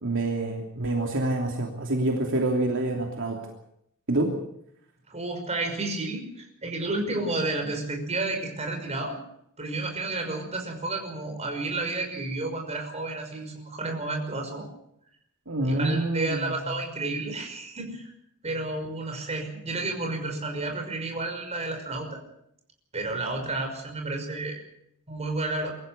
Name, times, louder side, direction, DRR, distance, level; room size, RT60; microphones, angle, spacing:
voice 1, 0.0-3.4 4.1-4.3 15.5-16.6, right 2 dB, 60° right, 1 dB, 3.1 m, -27 dB
voice 2, 5.1-9.2 9.6-14.7 15.6-18.1 18.4-22.2 22.9-24.6 25.1-25.7, right 2 dB, 30° right, 3 dB, 5.7 m, -31 dB
23.5 x 15.0 x 8.5 m, 0.74 s
head